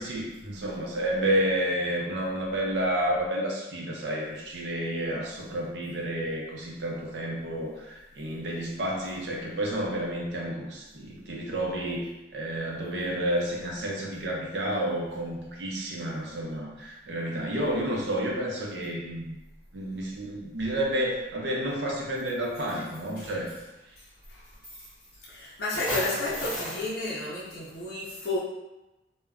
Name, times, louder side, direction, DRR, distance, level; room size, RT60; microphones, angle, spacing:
voice 1, 0.0-12.1 12.3-19.4 19.7-23.5, right 1 dB, 85° right, -1 dB, 0.6 m, -30 dB
sound 1, 22.2-22.3 22.7-23.1 24.2-24.3 24.6-25.3 25.7-26.9, equal, 5° right, 1.0 m, -34 dB
voice 2, 25.3-28.4, left 2 dB, 65° left, -7 dB, 0.5 m, -32 dB
2.2 x 2.1 x 3.5 m, 1.0 s
head